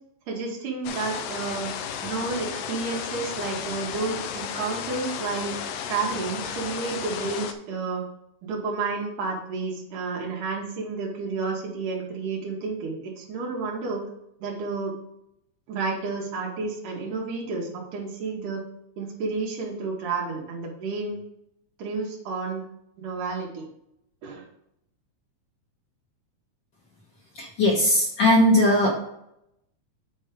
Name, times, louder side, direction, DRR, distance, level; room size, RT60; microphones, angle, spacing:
voice 1, 0.3-1.7 2.0-5.6 5.9-8.0 8.4-14.0 14.4-14.9 15.7-18.6 19.0-21.2 21.8-22.6 23.0-23.7 24.2-24.4, right 4 dB, 90° right, -2 dB, 2.9 m, -31 dB
sound 1, 0.8-7.5, left 8 dB, 75° left, 1.5 m, -33 dB
voice 2, 27.3-28.9, left 1 dB, 50° left, -1 dB, 1.4 m, -19 dB
8.0 x 4.5 x 5.0 m, 0.79 s
omnidirectional pair, 3.5 m